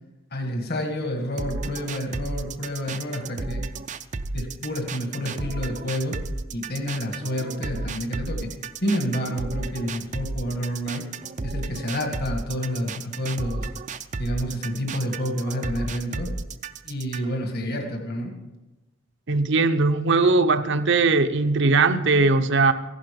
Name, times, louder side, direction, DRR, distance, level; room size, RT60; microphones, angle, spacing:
voice 1, 0.3-3.6 4.3-6.2 6.5-8.5 8.8-11.0 11.4-13.7 14.2-16.3 16.8-18.3, equal, 50° left, 3 dB, 1.9 m, -29 dB
sound 1, 1.4-17.4, right 3 dB, 35° right, 0.5 m, -33 dB
voice 2, 19.3-22.7, right 3 dB, 60° right, 9 dB, 0.8 m, -19 dB
15.5 x 11.5 x 5.3 m, 1.0 s
head